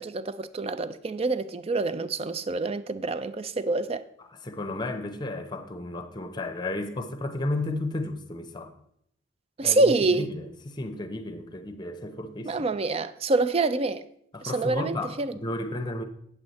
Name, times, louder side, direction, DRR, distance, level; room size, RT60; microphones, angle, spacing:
voice 1, 0.0-4.0 9.6-10.3 12.5-14.0 14.5-15.3, right 3 dB, 30° right, 0.4 m, -26 dB
voice 2, 4.2-8.7 9.6-12.6 14.3-16.0, left 2 dB, 20° left, 0.7 m, -33 dB
8.6 x 7.9 x 4.1 m
head